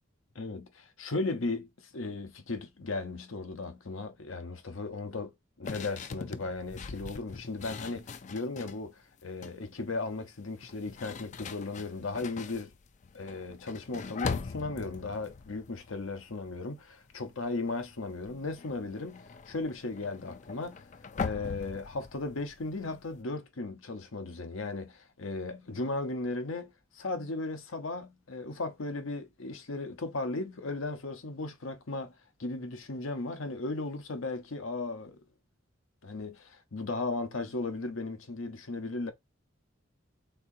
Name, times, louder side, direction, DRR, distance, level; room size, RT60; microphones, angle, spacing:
voice 1, 0.3-1.7 1.9-12.7 13.1-20.8 21.2-32.1 32.4-35.2 36.0-39.1, left 3 dB, 85° left, 0.9 m, -36 dB
sound 1, 5.6-8.8 9.2-9.7 10.6-16.8 17.1-17.5 17.7-23.2, left 5 dB, 35° left, 0.4 m, -41 dB
4.4 x 3.7 x 2.7 m
head